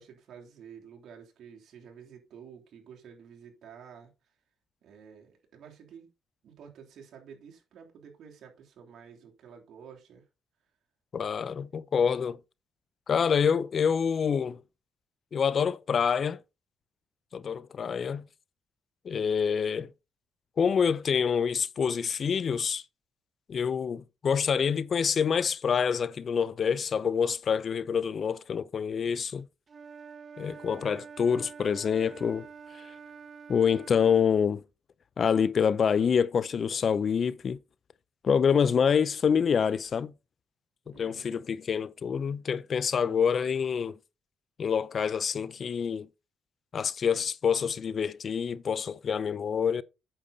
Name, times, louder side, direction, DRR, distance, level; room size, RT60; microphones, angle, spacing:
voice 1, 0.0-4.1 4.8-6.1 6.4-10.2 40.8-41.3, right 7 dB, 70° right, 3.0 m, -50 dB
voice 2, 11.1-12.4 13.1-14.6 15.3-16.4 17.3-18.3 19.0-19.9 20.6-22.8 23.5-29.5 30.4-32.5 33.5-34.6 35.2-37.6 38.2-40.1 40.9-44.0 44.6-46.1 46.7-49.8, left 7 dB, 50° left, 0.5 m, -26 dB
Wind instrument woodwind instrument, 29.7-34.3, right 6 dB, 40° right, 0.9 m, -47 dB
8.7 x 6.8 x 4.0 m
cardioid pair, 90°, 0 cm